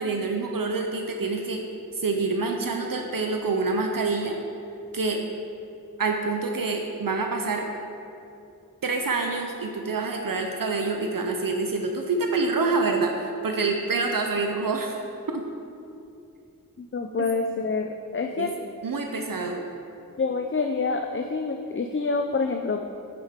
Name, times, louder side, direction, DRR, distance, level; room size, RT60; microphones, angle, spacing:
voice 1, 0.0-1.6 1.9-4.4 4.9-5.2 6.0-7.7 8.8-15.0 15.3-15.4 17.2-17.3 18.4-18.5 18.8-19.6, right 3 dB, 70° right, 3 dB, 0.7 m, -26 dB
voice 2, 16.8-18.5 20.2-22.9, left 4 dB, 35° left, 4 dB, 0.5 m, -27 dB
8.8 x 7.7 x 3.6 m, 2.6 s
wide cardioid pair, 45°, 35 cm